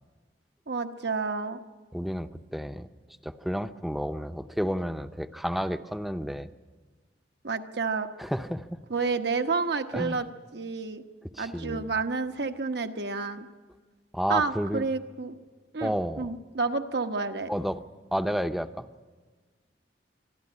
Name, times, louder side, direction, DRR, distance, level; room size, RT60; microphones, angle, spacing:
voice 1, 0.7-1.6 7.4-8.1 8.9-10.3 10.5-11.0 11.4-13.5 14.3-15.4 15.7-17.5, right 4 dB, 65° right, 7 dB, 1.2 m, -30 dB
voice 2, 1.9-2.9 3.2-6.5 8.2-8.8 9.9-10.2 11.2-11.9 14.1-14.8 15.8-16.3 17.5-17.8 18.1-18.9, equal, ahead, 10 dB, 0.7 m, -31 dB
25.5 x 12.0 x 9.7 m, 1.4 s
head